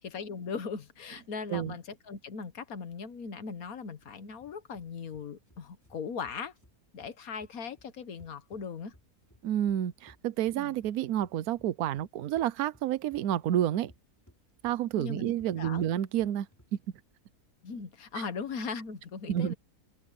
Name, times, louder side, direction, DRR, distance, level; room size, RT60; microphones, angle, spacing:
voice 1, 0.0-6.5 6.9-8.9 10.5-10.7 14.9-15.9 17.6-19.5, left 5 dB, 60° left, 1.6 m, -39 dB
sound 1, 4.0-17.0, equal, 10° left, 2.9 m, -61 dB
voice 2, 9.4-13.9 14.6-16.5 16.7-16.8 19.3-19.5, right 11 dB, 70° right, 1.2 m, -29 dB
omnidirectional pair, 1.7 m